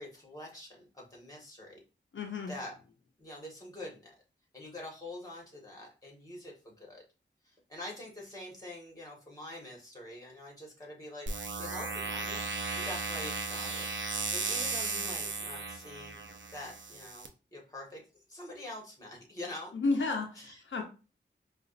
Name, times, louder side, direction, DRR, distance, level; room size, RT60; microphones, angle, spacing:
voice 1, 0.0-1.8 2.5-2.7 3.2-4.2 4.5-7.0 7.4-11.3 11.6-12.4 12.7-13.9 14.3-16.2 16.5-19.7 20.4-20.5, left 1 dB, 20° left, -1 dB, 1.7 m, -45 dB
voice 2, 2.1-2.6 19.7-20.8, left 3 dB, 90° left, 3 dB, 0.7 m, -32 dB
sound 1, 11.3-17.3, right 4 dB, 80° right, 0.6 m, -36 dB
4.8 x 2.4 x 2.5 m, 0.32 s
wide cardioid pair, 70°, 19 cm